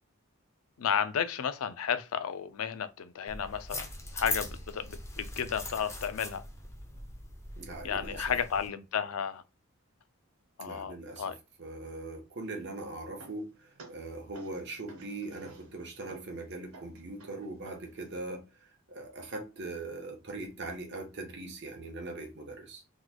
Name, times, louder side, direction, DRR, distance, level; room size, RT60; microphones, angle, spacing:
voice 1, 0.8-3.9 4.1-6.4 7.8-9.4 10.6-11.4, left 7 dB, 85° left, 0.5 m, -33 dB
sound 1, 3.3-8.7, left 2 dB, 15° left, 0.7 m, -41 dB
voice 2, 7.5-8.4 10.6-22.8, right 2 dB, 55° right, 1.1 m, -41 dB
sound 2, 12.4-18.2, right 3 dB, 85° right, 1.3 m, -55 dB
3.9 x 3.1 x 2.2 m
head